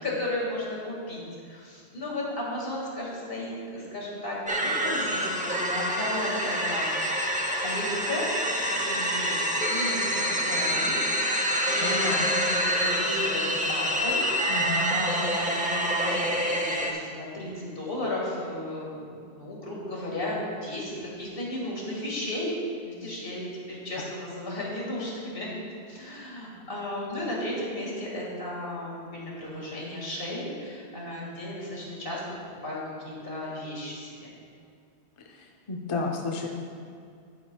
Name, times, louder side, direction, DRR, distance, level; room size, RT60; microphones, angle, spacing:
voice 1, 0.0-6.9 7.6-11.0 11.3-22.5 22.8-25.5 25.9-32.2 32.6-34.3, left 1 dB, 60° left, -4 dB, 2.2 m, -34 dB
sound 1, 4.5-16.9, equal, 10° right, 0.6 m, -27 dB
voice 2, 11.8-12.5 14.5-15.0 35.7-36.5, left 3 dB, 35° left, 1 dB, 0.6 m, -31 dB
11.5 x 9.4 x 2.3 m, 2.3 s
omnidirectional pair, 1.1 m